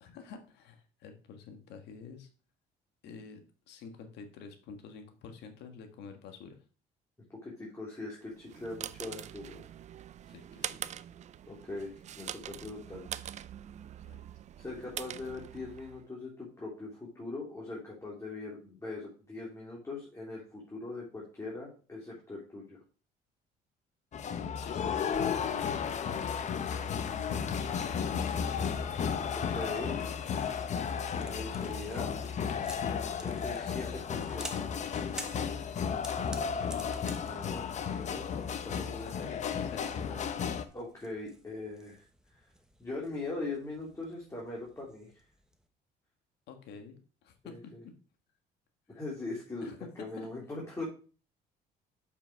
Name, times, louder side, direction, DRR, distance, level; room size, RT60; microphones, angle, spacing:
voice 1, 0.0-2.3 3.0-6.6 10.3-10.9 14.1-14.3 24.5-28.4 36.3-36.8 38.7-40.4 46.5-47.9 49.6-50.3, left 5 dB, 80° left, 6 dB, 1.6 m, -48 dB
voice 2, 7.3-9.6 11.5-13.3 14.6-22.8 29.3-30.1 31.2-32.2 33.2-34.7 37.2-37.6 37.9-38.3 38.5-39.3 40.7-42.0 42.3-42.4 42.8-45.2 47.4-47.6 48.9-50.8, left 2 dB, 15° left, -4 dB, 2.9 m, -41 dB
sound 1, 8.3-16.1, right 10 dB, 45° right, 0.4 m, -44 dB
sound 2, 24.1-40.6, left 7 dB, 45° left, 0.8 m, -34 dB
sound 3, 29.9-45.7, right 1 dB, 5° right, 1.1 m, -52 dB
7.4 x 5.6 x 4.6 m, 0.37 s
cardioid pair, 110°, 17 cm